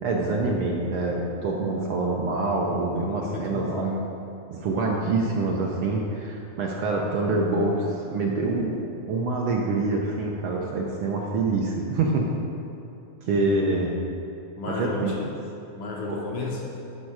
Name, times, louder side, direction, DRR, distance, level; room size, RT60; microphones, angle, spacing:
voice 1, 0.0-3.9 4.5-8.7 9.1-12.3 13.2-13.9 14.7-15.1 16.1-16.2, right 3 dB, 80° right, -2 dB, 1.2 m, -26 dB
voice 2, 3.1-4.0 13.4-13.8 14.6-15.5 15.7-16.6, left 1 dB, 60° left, -3 dB, 1.6 m, -32 dB
10.5 x 5.4 x 4.9 m, 2.8 s
omnidirectional pair, 3.4 m